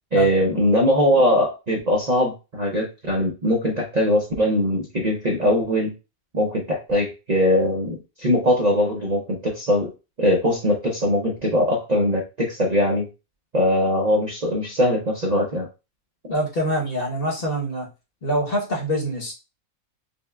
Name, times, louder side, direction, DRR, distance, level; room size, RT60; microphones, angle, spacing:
voice 1, 0.1-5.9 6.3-9.9 10.2-13.1 13.5-15.7, equal, 40° right, -3 dB, 0.7 m, -21 dB
voice 2, 16.3-17.9 18.2-19.3, equal, 45° left, -1 dB, 1.1 m, -25 dB
5.4 x 2.2 x 2.2 m, 0.28 s
omnidirectional pair, 1.5 m